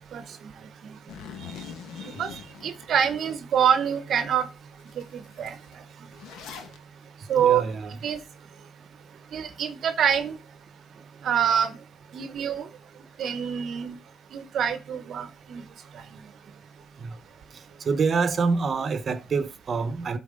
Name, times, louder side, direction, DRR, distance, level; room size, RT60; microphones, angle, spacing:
Zipper (clothing), 1.1-3.3 3.8-3.9 4.4-4.5 4.7-6.8, left 7 dB, 85° left, 1.3 m, -43 dB
voice 1, 2.2-4.5 5.0-5.1 5.4-5.6 7.3-7.6 8.0-8.2 9.3-10.4 11.2-11.8 12.1-12.7 13.2-14.0 14.3-15.6, right 8 dB, 65° right, 0.8 m, -25 dB
voice 2, 7.4-7.9 17.0-17.2 17.8-20.2, right 4 dB, 45° right, 1.0 m, -26 dB
12.0 x 4.2 x 3.7 m
cardioid pair, 90°, 0 cm